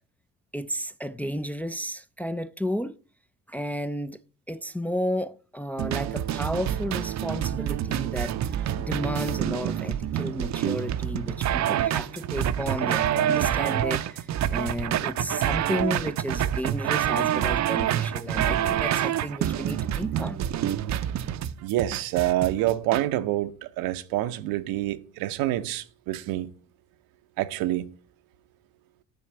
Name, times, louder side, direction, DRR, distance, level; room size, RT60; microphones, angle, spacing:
voice 1, 0.5-3.0 3.5-4.2 4.5-20.4, equal, 5° left, 0.3 m, -32 dB
sound 1, 5.8-23.0, right 11 dB, 55° right, 0.6 m, -27 dB
voice 2, 11.3-11.8 14.4-14.8 17.6-18.1 18.4-18.5 21.6-26.5 27.4-27.9, right 14 dB, 90° right, 0.8 m, -28 dB
9.3 x 3.8 x 6.9 m
cardioid pair, 95°, 34 cm